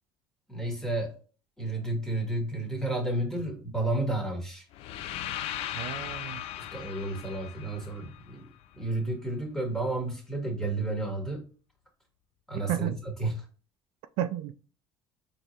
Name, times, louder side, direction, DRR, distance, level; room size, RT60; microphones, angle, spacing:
voice 1, 0.5-1.1 1.6-4.6 6.7-8.5 8.7-11.4 12.5-12.9 13.2-13.3, right 2 dB, 5° left, 1 dB, 1.6 m, -31 dB
sound 1, 4.7-8.8, left 12 dB, 70° left, 0.4 m, -38 dB
voice 2, 5.7-6.4 12.6-13.0 14.2-14.5, right 12 dB, 75° right, 11 dB, 0.4 m, -32 dB
4.4 x 3.1 x 2.8 m, 0.37 s
supercardioid pair, 100°, 10 cm